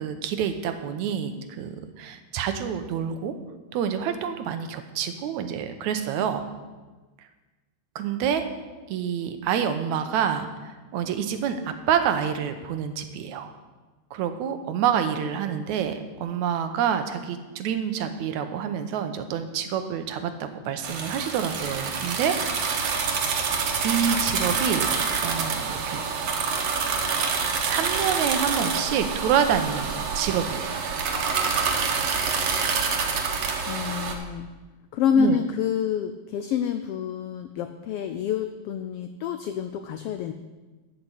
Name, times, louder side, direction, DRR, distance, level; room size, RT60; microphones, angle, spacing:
voice 1, 0.0-3.4 3.7-6.5 8.0-8.5 8.9-13.5 14.1-22.7 23.8-24.9 25.2-26.0 27.6-30.9 35.2-35.4, right 8 dB, 80° right, 8 dB, 2.2 m, -27 dB
sound 1, 20.8-34.1, right 5 dB, 65° right, 2.2 m, -27 dB
voice 2, 33.7-34.5 34.9-40.3, left 7 dB, 85° left, 8 dB, 1.3 m, -27 dB
13.0 x 5.9 x 8.2 m, 1.2 s
omnidirectional pair, 3.3 m